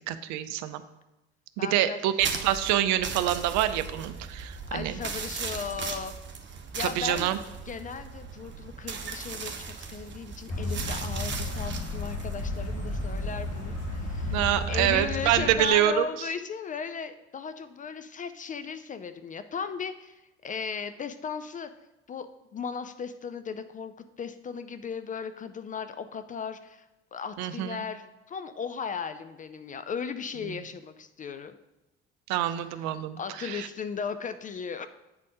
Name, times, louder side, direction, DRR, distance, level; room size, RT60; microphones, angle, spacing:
voice 1, 0.1-0.8 1.6-5.0 6.8-7.4 14.3-16.0 27.4-27.8 32.3-33.7, right 12 dB, 55° right, 12 dB, 0.6 m, -26 dB
voice 2, 1.6-2.0 4.7-6.1 6.7-7.3 7.7-14.4 14.7-21.7 22.1-31.5 32.7-34.9, left 6 dB, 25° left, 10 dB, 0.3 m, -36 dB
sound 1, 2.2-14.6, right 4 dB, 35° right, 0.9 m, -38 dB
sound 2, 10.5-15.5, left 1 dB, 45° left, 1.8 m, -33 dB
8.6 x 4.1 x 4.8 m, 0.99 s
figure-of-eight pair, 55°, 34 cm